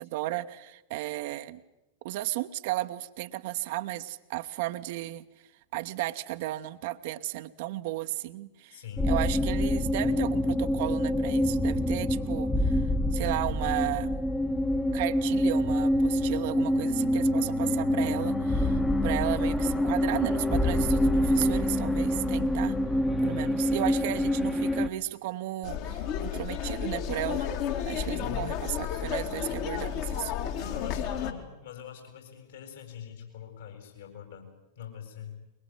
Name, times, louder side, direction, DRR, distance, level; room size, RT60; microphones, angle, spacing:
voice 1, 0.0-1.6 2.0-5.2 5.7-12.8 13.1-14.2 14.9-22.8 23.2-27.5 27.9-30.3, right 16 dB, 50° right, 10 dB, 1.0 m, -34 dB
voice 2, 8.7-9.1 28.1-28.5 30.3-34.5 34.8-35.4, left 8 dB, 65° left, 4 dB, 6.9 m, -43 dB
sound 1, 9.0-24.9, left 1 dB, 10° left, 1.3 m, -26 dB
sound 2, 25.6-31.3, left 9 dB, 45° left, 2.4 m, -32 dB
23.0 x 22.5 x 9.4 m, 0.97 s
figure-of-eight pair, 90°, 0 cm